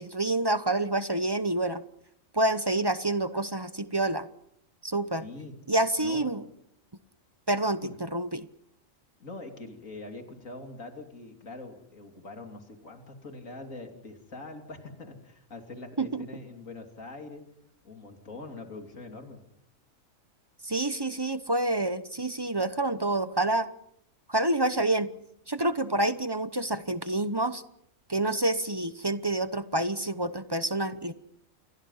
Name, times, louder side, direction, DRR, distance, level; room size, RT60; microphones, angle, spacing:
voice 1, 0.0-1.8 2.3-4.3 4.8-5.2 5.7-6.4 7.5-8.5 16.0-16.3 20.6-23.7 24.3-25.1 25.5-27.6 28.1-31.1, right 2 dB, 20° right, 12 dB, 0.8 m, -28 dB
voice 2, 5.2-5.5 6.0-6.3 7.8-8.0 9.2-17.4 17.8-19.4, left 2 dB, 85° left, 4 dB, 3.5 m, -43 dB
28.5 x 23.0 x 5.7 m, 0.75 s
omnidirectional pair, 1.4 m